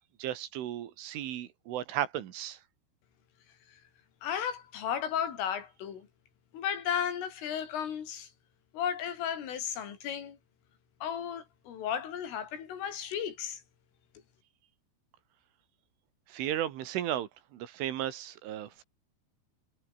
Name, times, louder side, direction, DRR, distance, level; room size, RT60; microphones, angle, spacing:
voice 1, 0.2-2.6 16.3-18.8, right 12 dB, 75° right, 4.3 m, -35 dB
voice 2, 4.2-6.1 6.5-8.3 8.7-10.4 11.0-13.6, left 8 dB, 75° left, 6.0 m, -34 dB
omnidirectional pair, 5.8 m